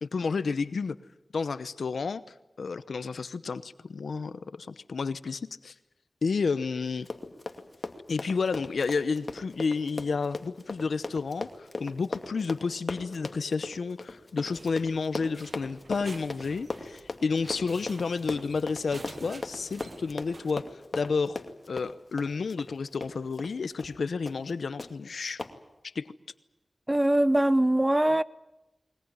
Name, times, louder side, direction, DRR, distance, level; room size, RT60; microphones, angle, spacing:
voice 1, 0.0-1.0 1.3-2.2 2.6-5.7 6.2-7.1 8.1-21.4 21.7-25.4 25.9-26.1, left 4 dB, 85° left, 0.9 m, -31 dB
Run, 6.9-23.5 23.8-24.0 24.3-24.5 24.8-24.9 25.4-25.5, left 3 dB, 50° left, 2.3 m, -38 dB
sound 1, 14.5-20.6, right 3 dB, 55° right, 1.2 m, -49 dB
voice 2, 26.9-28.2, right 1 dB, 20° right, 0.8 m, -22 dB
21.5 x 20.5 x 9.6 m
cardioid pair, 45°, 0 cm